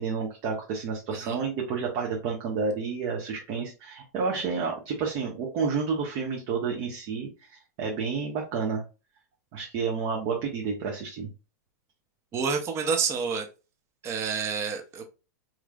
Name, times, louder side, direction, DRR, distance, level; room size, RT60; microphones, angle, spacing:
voice 1, 0.0-7.5 7.8-8.8 9.5-11.3, right 5 dB, 50° right, -1 dB, 1.0 m, -30 dB
voice 2, 12.3-13.5 14.0-15.0, right 5 dB, 30° right, 5 dB, 0.7 m, -28 dB
3.9 x 3.0 x 2.3 m, 0.30 s
hypercardioid pair, 110°, 10 cm